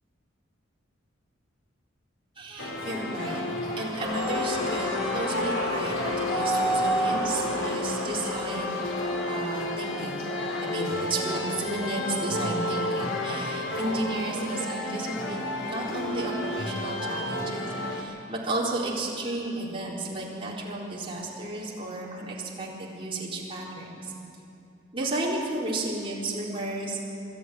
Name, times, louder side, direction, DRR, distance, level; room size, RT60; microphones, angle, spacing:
voice 1, 2.4-3.4 3.8-8.9 9.2-10.3 10.6-15.4 15.7-24.0 24.9-27.0, right 2 dB, 30° right, -5 dB, 4.1 m, -33 dB
sound 1, 2.6-18.0, left 1 dB, 80° left, 2.7 m, -32 dB
sound 2, 4.0-9.5, equal, 65° left, 6.7 m, -30 dB
22.5 x 13.0 x 9.4 m, 2.7 s
head